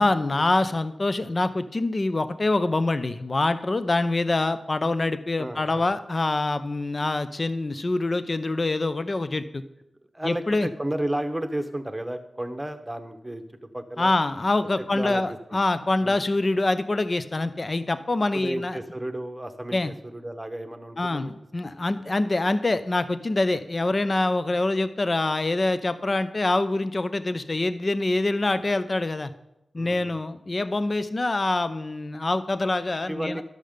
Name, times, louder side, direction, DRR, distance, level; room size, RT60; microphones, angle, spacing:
voice 1, 0.0-9.6 10.2-10.7 14.0-18.8 19.7-19.9 21.0-29.3 29.7-33.4, left 2 dB, 40° left, 11 dB, 0.6 m, -25 dB
voice 2, 5.4-5.9 10.1-14.1 14.8-15.6 16.0-16.2 18.3-21.3 22.0-22.1 29.8-30.2 33.1-33.4, right 1 dB, 15° right, 7 dB, 1.0 m, -33 dB
11.5 x 6.6 x 5.1 m, 0.85 s
cardioid pair, 70°, 0 cm